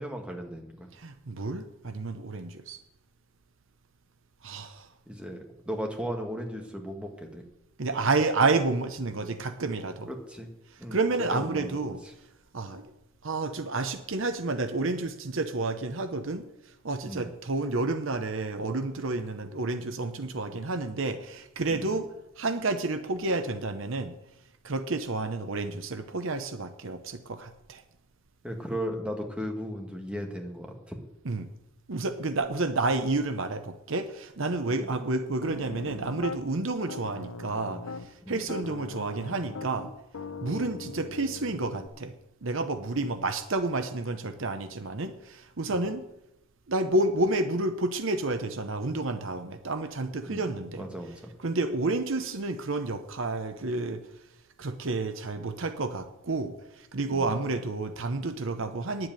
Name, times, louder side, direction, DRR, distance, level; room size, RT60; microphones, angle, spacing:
voice 1, 0.0-0.9 5.1-7.4 10.1-10.5 10.8-11.0 11.3-12.1 17.1-17.3 21.7-22.0 28.4-31.0 34.7-34.9 38.2-38.5 45.7-45.9 50.3-51.3 57.1-57.3, equal, 5° right, 2 dB, 1.6 m, -36 dB
voice 2, 0.9-2.8 4.4-4.9 7.8-10.1 10.9-12.0 12.5-12.9 13.2-16.5 16.8-22.1 22.4-24.1 24.6-27.8 31.2-31.5 31.9-39.9 40.4-42.1 42.4-46.0 46.7-50.9 51.4-54.0 54.6-59.1, right 2 dB, 60° right, 9 dB, 0.8 m, -30 dB
Piano, 35.4-36.4 36.9-38.1 38.5-41.9, left 4 dB, 80° left, 0.8 m, -40 dB
10.0 x 7.8 x 9.0 m, 0.88 s
head